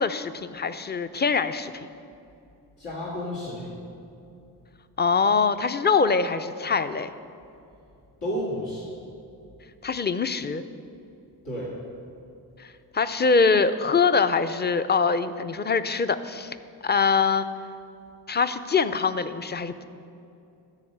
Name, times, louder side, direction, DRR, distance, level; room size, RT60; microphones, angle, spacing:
voice 1, 0.0-1.9 5.0-7.1 9.8-10.6 12.6-16.6 16.8-17.5 18.3-19.9, left 5 dB, 25° left, 11 dB, 0.5 m, -23 dB
voice 2, 2.8-3.7 8.2-8.9 11.4-11.7, equal, 85° left, -8 dB, 2.4 m, -31 dB
13.0 x 4.9 x 6.7 m, 2.6 s
cardioid pair, 50°, 41 cm